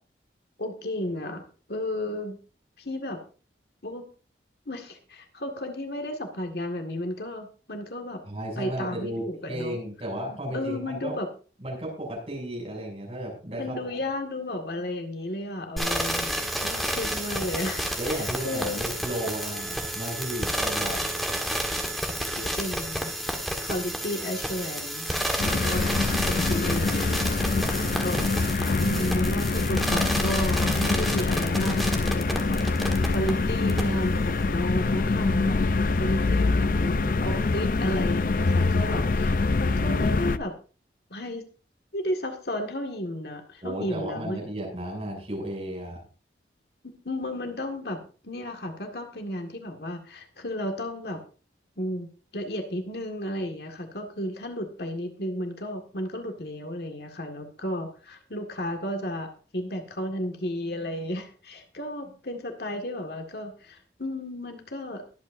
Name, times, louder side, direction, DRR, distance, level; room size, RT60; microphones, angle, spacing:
voice 1, 0.6-1.4 1.7-2.4 2.8-3.2 3.8-4.1 4.7-8.2 8.6-9.8 10.3-11.3 13.6-16.3 16.6-18.9 22.4-23.1 23.6-25.3 25.7-28.3 28.8-35.6 35.9-40.5 41.1-41.5 41.9-44.4 46.8-51.2 51.8-65.0, left 1 dB, 65° left, 4 dB, 1.9 m, -33 dB
voice 2, 8.3-11.1 11.6-13.9 18.0-21.1 27.7-28.5 43.6-46.0, right 1 dB, 35° right, -2 dB, 7.2 m, -34 dB
sound 1, 15.8-33.3 33.7-33.8, equal, ahead, 1.5 m, -30 dB
sound 2, 25.4-40.4, left 3 dB, 50° left, 0.5 m, -25 dB
23.0 x 8.6 x 2.6 m, 0.37 s
head